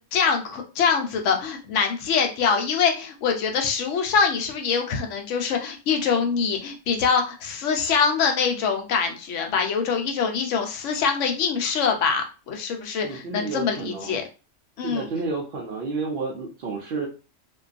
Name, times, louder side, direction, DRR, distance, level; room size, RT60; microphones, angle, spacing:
voice 1, 0.0-14.2 14.8-15.1, left 6 dB, 75° left, 4 dB, 0.9 m, -24 dB
voice 2, 13.0-14.2 14.8-17.1, right 4 dB, 60° right, -1 dB, 0.6 m, -31 dB
2.5 x 2.2 x 2.4 m, 0.33 s
omnidirectional pair, 1.3 m